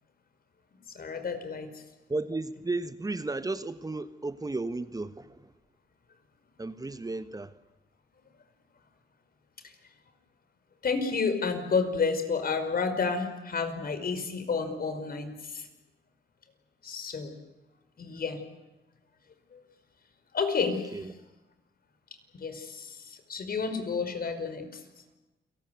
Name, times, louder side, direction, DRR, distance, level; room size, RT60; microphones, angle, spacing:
voice 1, 0.9-1.7 9.6-9.7 10.8-15.7 16.8-17.4 18.0-18.4 19.5-19.6 20.3-21.0 22.3-24.8, left 5 dB, 50° left, 5.2 m, -30 dB
voice 2, 2.1-5.5 6.6-7.5 20.9-21.1, right 2 dB, 20° right, 1.3 m, -34 dB
29.0 x 19.0 x 9.5 m
supercardioid pair, 70°, 19 cm